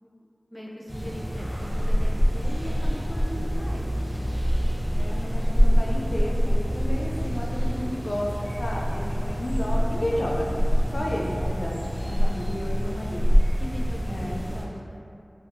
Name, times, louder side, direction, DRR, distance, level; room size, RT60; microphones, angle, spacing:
voice 1, 0.0-3.9 10.8-11.2 12.2-13.2 13.6-15.0, equal, 5° left, -3 dB, 0.5 m, -40 dB
sound 1, 0.9-14.6, equal, 20° right, 1.3 m, -25 dB
voice 2, 4.9-10.5 10.9-13.3 14.1-14.7, left 1 dB, 85° left, -2 dB, 0.3 m, -32 dB
3.5 x 2.8 x 2.5 m, 2.5 s
wide cardioid pair, 45°, 0 cm